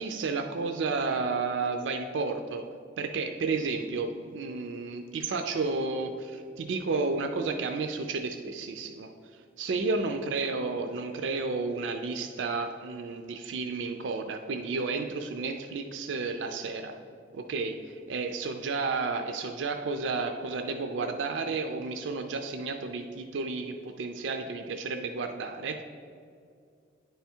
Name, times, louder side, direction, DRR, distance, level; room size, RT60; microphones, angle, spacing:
voice 1, 0.0-2.6 3.0-17.0 17.3-25.8, right 4 dB, 75° right, 6 dB, 0.4 m, -32 dB
9.4 x 3.4 x 4.4 m, 2.4 s
head